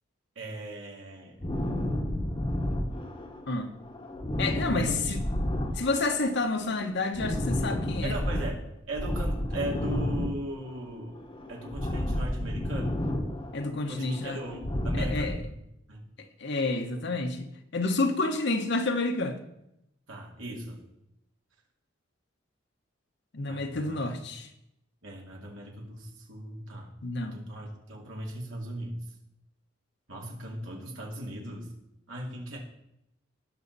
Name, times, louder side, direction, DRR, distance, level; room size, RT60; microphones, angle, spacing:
voice 1, 0.4-1.4 4.7-5.2 8.0-8.6 8.9-11.2 11.5-13.0 13.9-15.5 15.9-16.0 20.1-20.8 23.5-24.0 25.0-26.9 27.2-29.0 30.1-31.7 32.1-32.6, right 1 dB, 85° right, 2.7 m, -38 dB
sound 1, 1.4-3.5 3.8-6.4 6.6-8.6 8.9-10.9 11.1-13.7 14.0-15.4, left 1 dB, 25° left, 1.0 m, -31 dB
voice 2, 4.4-5.2 5.7-8.2 13.5-14.4 14.9-15.4 16.2-19.4 23.3-24.5 27.0-27.4, left 3 dB, 60° left, 1.1 m, -29 dB
17.5 x 6.3 x 4.1 m
head